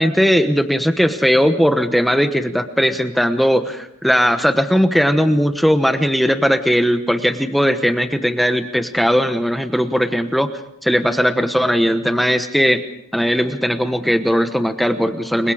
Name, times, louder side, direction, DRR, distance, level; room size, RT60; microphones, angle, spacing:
voice 1, 0.0-10.5 10.8-12.8 13.1-15.5, equal, ahead, 8 dB, 1.1 m, -18 dB
29.5 x 23.0 x 5.0 m, 0.75 s
head